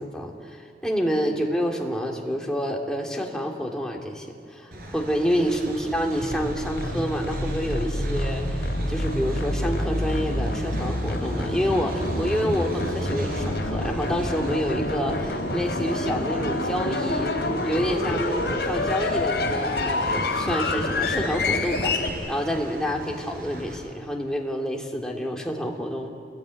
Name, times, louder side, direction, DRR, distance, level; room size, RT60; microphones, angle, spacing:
voice 1, 0.0-17.3 17.6-26.1, equal, 5° left, 0 dB, 2.8 m, -28 dB
Train, 4.7-23.8, right 1 dB, 55° right, 5.2 m, -39 dB
sound 1, 6.2-22.1, left 2 dB, 70° left, 3.8 m, -27 dB
28.5 x 21.0 x 9.6 m, 2.3 s
head